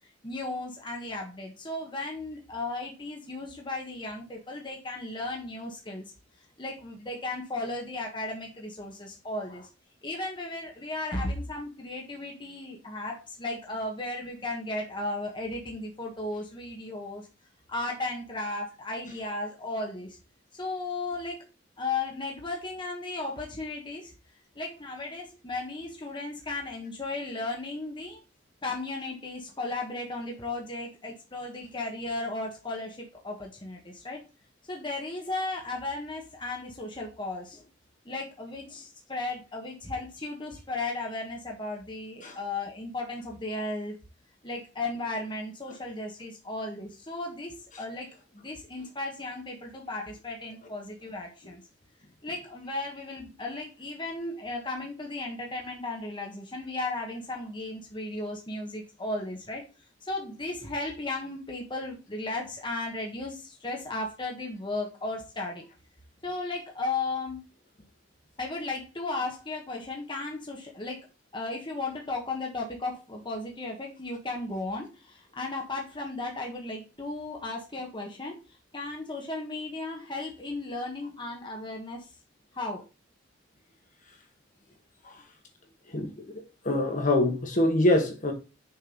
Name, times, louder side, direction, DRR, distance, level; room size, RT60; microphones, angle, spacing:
voice 1, 0.2-6.0 6.6-9.7 10.0-17.3 17.7-20.2 20.5-21.5 21.8-24.1 24.5-28.2 28.6-34.2 34.7-37.6 38.0-43.9 44.4-48.1 48.3-51.6 52.2-59.6 60.0-65.6 66.2-67.4 68.4-71.0 71.3-78.4 78.7-82.1 82.5-82.8, left 2 dB, 25° left, 1.5 m, -35 dB
voice 2, 86.7-88.3, left 1 dB, 45° left, 1.9 m, -24 dB
6.8 x 5.3 x 3.9 m
head